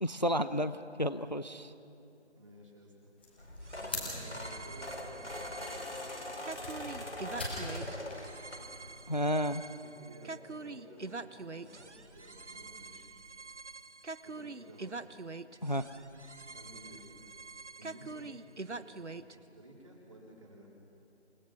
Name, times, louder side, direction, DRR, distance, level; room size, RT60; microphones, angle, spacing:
voice 1, 0.0-0.7 1.0-1.7 9.1-9.6 15.6-15.8, equal, 40° left, 13 dB, 0.5 m, -31 dB
voice 2, 2.3-3.1 3.8-5.3 5.5-6.7 7.1-8.2 9.8-13.1 14.2-15.0 16.5-17.1 17.8-18.3 18.7-19.1 19.3-20.7, right 1 dB, 25° right, -1 dB, 3.4 m, -54 dB
sound 1, 3.2-9.6, left 1 dB, 10° left, 1.7 m, -45 dB
sound 2, 3.4-9.0 9.5-9.7 11.0-11.1 11.3-11.4 11.8-11.9, left 1 dB, 75° left, 4.4 m, -43 dB
sound 3, 3.6-19.3, right 3 dB, 80° right, 1.0 m, -45 dB
28.5 x 18.0 x 6.1 m, 2.7 s
figure-of-eight pair, 165°, 34 cm